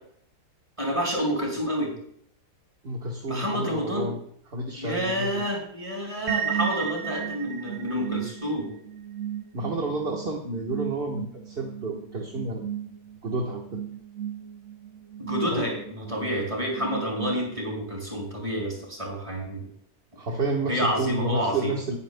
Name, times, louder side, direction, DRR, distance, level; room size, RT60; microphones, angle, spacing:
voice 1, 0.8-1.9 3.3-4.1 4.8-8.7 15.2-19.7 20.7-21.7, equal, 20° right, -1 dB, 5.0 m, -29 dB
voice 2, 2.8-4.2 4.5-5.4 9.5-12.9 13.2-13.8 15.5-15.7 20.1-22.0, right 2 dB, 40° right, 1 dB, 1.5 m, -30 dB
sound 1, 6.3-17.9, right 9 dB, 60° right, 1.0 m, -35 dB
20.5 x 10.5 x 2.2 m, 0.66 s
omnidirectional pair, 1.7 m